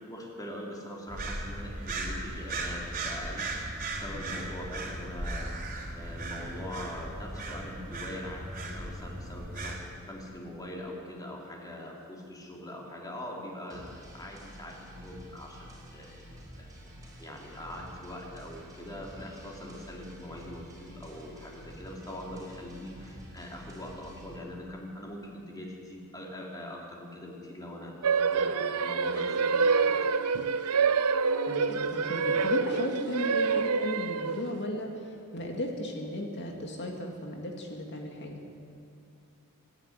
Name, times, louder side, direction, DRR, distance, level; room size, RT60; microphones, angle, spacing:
voice 1, 0.0-3.5 3.9-5.6 5.9-9.8 10.1-16.7 17.2-30.0, left 1 dB, 15° left, -1 dB, 3.5 m, -42 dB
sound 1, 1.1-9.8, right 2 dB, 40° right, 3.6 m, -37 dB
sound 2, 13.7-24.4, equal, 15° right, 4.9 m, -49 dB
sound 3, 28.0-34.6, right 5 dB, 85° right, 0.7 m, -27 dB
voice 2, 31.5-38.4, equal, 50° left, 1 dB, 2.3 m, -35 dB
25.0 x 11.0 x 10.0 m, 2.5 s
head